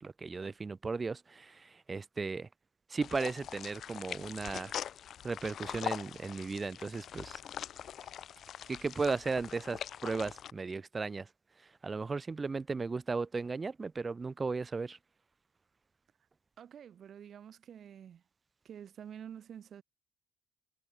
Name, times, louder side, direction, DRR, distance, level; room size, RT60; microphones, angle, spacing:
voice 1, 0.0-2.5 2.9-4.7 5.2-7.4 8.7-11.3 11.6-15.0, right 4 dB, 30° right, 0.4 m, -36 dB
sound 1, 3.0-10.5, left 9 dB, 65° left, 0.6 m, -43 dB
voice 2, 16.6-18.2 18.6-19.8, right 9 dB, 60° right, 4.5 m, -48 dB
cardioid pair, 90°, 0 cm